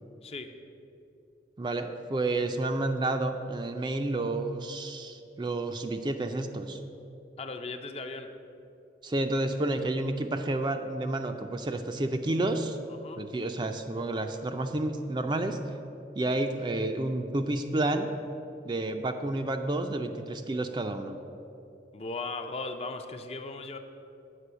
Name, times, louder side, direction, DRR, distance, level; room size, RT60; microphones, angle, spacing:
voice 1, 0.2-0.5 7.4-8.3 12.9-13.2 21.9-23.8, left 3 dB, 35° left, 7 dB, 0.5 m, -37 dB
voice 2, 1.6-6.8 9.0-12.8 13.2-15.6 16.2-18.1 18.6-21.2, right 2 dB, 25° right, 6 dB, 0.4 m, -30 dB
8.3 x 5.4 x 7.8 m, 2.7 s
head